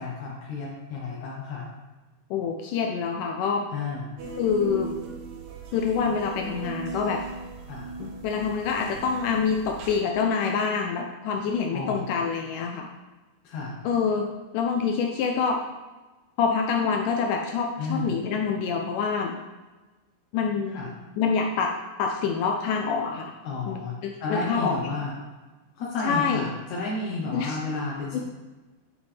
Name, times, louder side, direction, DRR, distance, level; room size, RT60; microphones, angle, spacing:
voice 1, 0.0-1.7 3.7-4.1 7.7-7.9 11.7-11.9 13.4-13.8 17.8-18.1 20.7-20.9 23.4-25.1 25.8-28.2, left 3 dB, 65° left, -5 dB, 2.0 m, -32 dB
voice 2, 2.3-3.6 4.4-4.9 5.7-7.2 8.0-12.9 13.8-14.3 14.5-15.6 16.4-19.3 20.3-20.9 21.2-21.7 22.0-23.3 23.7-24.9 26.0-26.5 27.3-27.6 28.1-28.2, left 6 dB, 90° left, 2 dB, 1.8 m, -26 dB
sound 1, 4.2-9.9, right 4 dB, 70° right, 2.7 m, -38 dB
9.4 x 5.2 x 3.4 m, 1.2 s
omnidirectional pair, 4.4 m